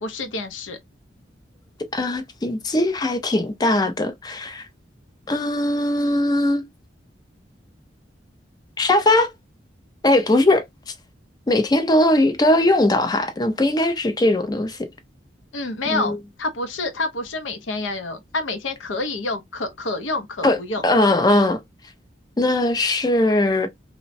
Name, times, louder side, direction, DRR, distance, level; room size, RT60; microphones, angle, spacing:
voice 1, 0.0-0.8 15.5-20.8, left 2 dB, 85° left, 0.6 m, -28 dB
voice 2, 1.9-4.6 5.3-6.6 8.8-9.3 10.0-10.9 11.5-14.9 15.9-16.2 20.4-20.6 20.8-21.6 22.4-23.7, left 1 dB, 20° left, 0.4 m, -19 dB
3.0 x 2.1 x 2.5 m
head